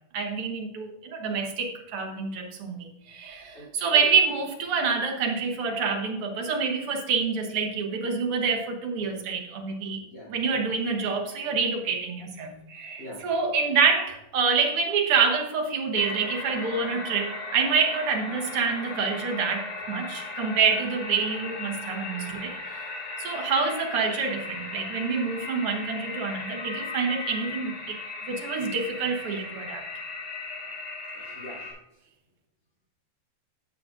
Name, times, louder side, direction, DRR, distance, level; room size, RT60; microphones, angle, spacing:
voice 1, 0.1-10.0 10.3-22.9 23.2-28.0 28.3-29.8, right 5 dB, 55° right, 2 dB, 1.8 m, -27 dB
voice 2, 3.5-4.1 10.0-10.6 13.0-13.2 31.1-31.7, equal, 35° left, -5 dB, 4.1 m, -43 dB
sound 1, 16.0-31.7, left 3 dB, 75° left, 3.4 m, -37 dB
11.5 x 7.6 x 2.5 m, 0.86 s
omnidirectional pair, 3.5 m